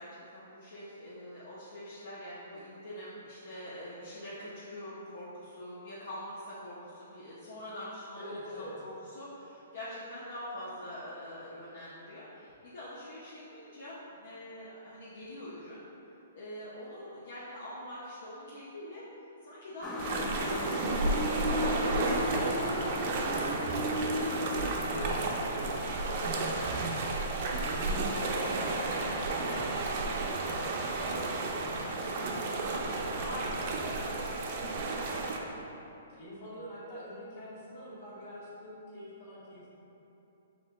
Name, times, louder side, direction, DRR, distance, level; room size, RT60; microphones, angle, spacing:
voice 1, 0.0-15.8 16.3-19.1 19.4-20.7 21.0-27.1 33.2-33.7, equal, 70° left, -8 dB, 0.7 m, -44 dB
voice 2, 8.1-8.7 27.6-32.3 32.8-35.4 36.1-39.7, left 1 dB, 50° left, -7 dB, 1.5 m, -44 dB
Motor vehicle (road) / Siren, 19.8-26.6, left 1 dB, 15° left, 0.3 m, -36 dB
sound 1, 20.0-35.4, right 3 dB, 50° right, 0.5 m, -32 dB
5.4 x 3.4 x 2.2 m, 2.9 s
hypercardioid pair, 145°, 0 cm